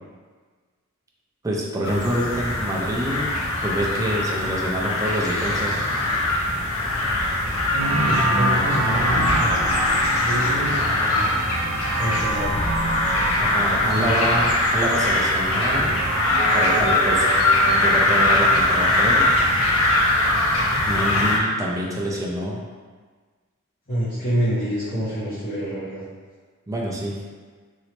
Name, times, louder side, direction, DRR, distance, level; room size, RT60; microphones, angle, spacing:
voice 1, 1.4-3.3 3.6-5.8 13.4-15.9 16.5-17.3 17.6-19.3 20.8-22.6 26.7-27.2, right 1 dB, 15° right, -3 dB, 0.4 m, -26 dB
sound 1, 1.8-21.4, left 1 dB, 70° left, 0.5 m, -21 dB
voice 2, 7.7-9.6 10.2-11.3 11.9-12.6 13.8-14.3 23.9-26.0, equal, 45° left, -14 dB, 1.1 m, -27 dB
sound 2, 7.8-18.0, right 2 dB, 90° right, 0.4 m, -28 dB
3.0 x 2.8 x 2.9 m, 1.5 s
head